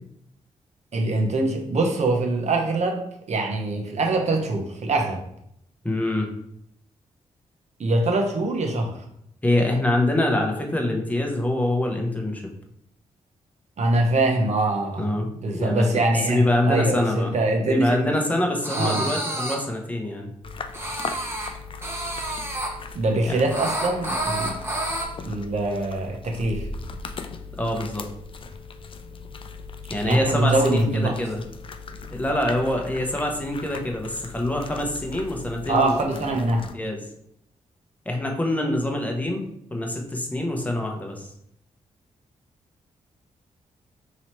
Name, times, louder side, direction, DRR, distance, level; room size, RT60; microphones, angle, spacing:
voice 1, 0.9-3.0 3.3-5.2 7.8-8.9 13.8-15.1 15.4-18.1 18.8-19.1 22.9-24.5 25.2-26.7 30.0-31.1 35.7-36.7, right 2 dB, 55° right, 1 dB, 0.9 m, -23 dB
voice 2, 5.8-6.3 9.4-12.5 15.0-17.3 17.6-20.3 23.3-23.4 27.6-28.0 29.9-31.4 32.1-36.0 36.7-37.0 38.0-41.3, left 1 dB, 10° left, 1 dB, 0.9 m, -25 dB
sound 1, 18.6-19.5 20.7-21.5 21.8-22.7 23.5-25.0, right 1 dB, 20° right, 1.0 m, -29 dB
sound 2, 20.4-36.7, left 4 dB, 40° left, 0.4 m, -39 dB
3.0 x 2.8 x 4.4 m, 0.74 s
supercardioid pair, 55°, 14 cm